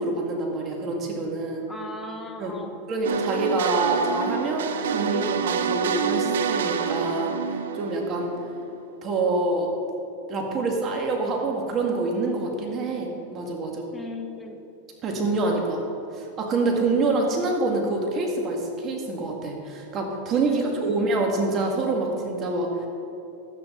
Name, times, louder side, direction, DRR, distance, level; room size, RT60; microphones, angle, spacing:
voice 1, 0.0-1.7 2.4-2.5 2.9-8.3 9.0-9.8 10.3-13.9 15.0-15.8 16.1-22.7, right 3 dB, 30° right, 1 dB, 2.0 m, -26 dB
voice 2, 1.7-2.8 13.9-14.6 20.4-21.0, left 2 dB, 10° left, 3 dB, 1.2 m, -37 dB
sound 1, 3.0-8.8, right 6 dB, 85° right, 0.6 m, -27 dB
12.5 x 9.6 x 3.9 m, 2.8 s
hypercardioid pair, 125°, 0 cm